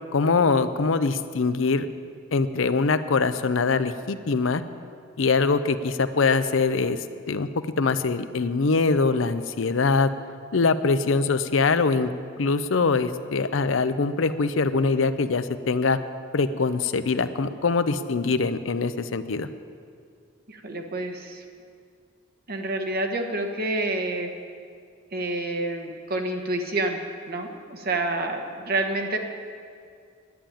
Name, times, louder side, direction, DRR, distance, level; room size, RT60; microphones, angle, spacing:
voice 1, 0.1-1.9 2.3-4.6 5.2-7.0 7.3-10.1 10.5-12.1 12.4-16.0 16.3-19.5, left 4 dB, 70° left, 11 dB, 0.6 m, -23 dB
voice 2, 20.5-21.4 22.5-24.3 25.1-27.0 27.3-29.2, right 2 dB, 50° right, 4 dB, 1.3 m, -28 dB
11.0 x 8.7 x 9.0 m, 2.2 s
head